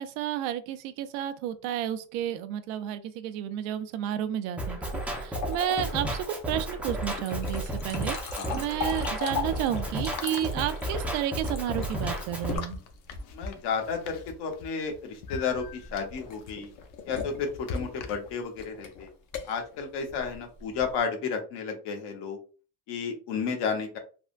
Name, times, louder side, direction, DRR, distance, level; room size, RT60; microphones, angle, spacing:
voice 1, 0.0-4.8 5.2-8.2 8.5-12.8, right 11 dB, 80° right, 11 dB, 0.6 m, -31 dB
Drum kit, 4.6-12.6, right 1 dB, 5° right, 0.4 m, -33 dB
sound 1, 4.9-13.5 15.3-21.0, left 5 dB, 40° left, 0.6 m, -39 dB
sound 2, 8.0-18.6, left 3 dB, 80° left, 0.7 m, -44 dB
voice 2, 13.3-16.7 17.1-19.1 19.5-22.4 22.9-24.0, left 5 dB, 60° left, 4 dB, 1.0 m, -32 dB
3.5 x 2.1 x 2.4 m, 0.36 s
cardioid pair, 135°, 46 cm